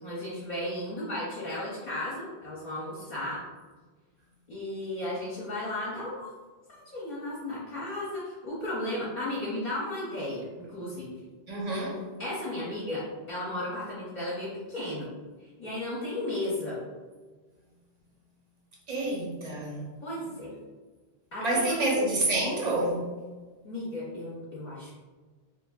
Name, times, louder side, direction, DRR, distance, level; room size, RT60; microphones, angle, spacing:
voice 1, 0.0-3.4 4.5-6.3 6.7-11.2 12.2-15.1 15.6-16.8 20.0-20.5 21.3-21.8 23.6-24.9, left 1 dB, 50° left, -8 dB, 0.7 m, -34 dB
voice 2, 11.5-12.0 18.9-19.8 21.4-23.1, right 1 dB, 45° right, -3 dB, 0.7 m, -28 dB
3.0 x 2.5 x 2.2 m, 1.3 s
omnidirectional pair, 1.1 m